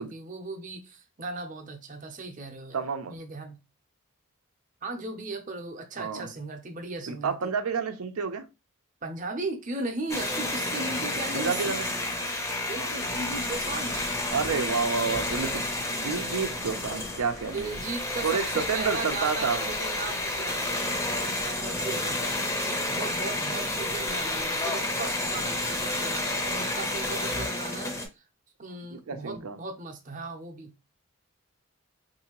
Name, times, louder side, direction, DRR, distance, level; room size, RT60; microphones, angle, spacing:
voice 1, 0.0-3.6 4.8-7.5 9.0-11.8 12.6-14.1 17.5-20.8 21.2-22.2 22.9-28.0 28.6-30.7, right 2 dB, 35° right, 0.6 m, -37 dB
voice 2, 2.7-3.1 6.0-6.3 7.1-8.4 11.3-11.9 12.2-12.3 12.7-12.9 14.3-17.8 18.2-19.7 28.9-29.6, right 5 dB, 90° right, 0.6 m, -30 dB
sound 1, 10.1-28.1, left 1 dB, 15° left, 0.5 m, -30 dB
sound 2, 13.0-27.5, left 1 dB, 65° left, 0.8 m, -47 dB
3.8 x 2.7 x 2.9 m
head